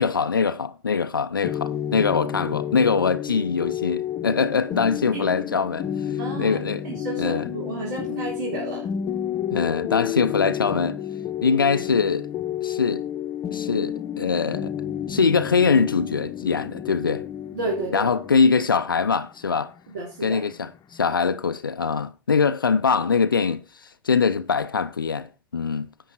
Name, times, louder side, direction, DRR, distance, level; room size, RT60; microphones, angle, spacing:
voice 1, 0.0-5.9 6.4-6.9 7.2-7.5 9.5-11.0 11.4-12.3 12.6-13.0 13.5-14.7 15.1-17.3 17.9-19.7 20.2-25.9, left 5 dB, 80° left, 0.5 m, -23 dB
sound 1, 1.4-21.0, left 10 dB, 35° left, 0.9 m, -31 dB
voice 2, 6.2-8.9 17.5-18.1 19.9-20.4, right 2 dB, 60° right, 3.8 m, -31 dB
10.5 x 8.3 x 4.4 m
figure-of-eight pair, 80°, 11 cm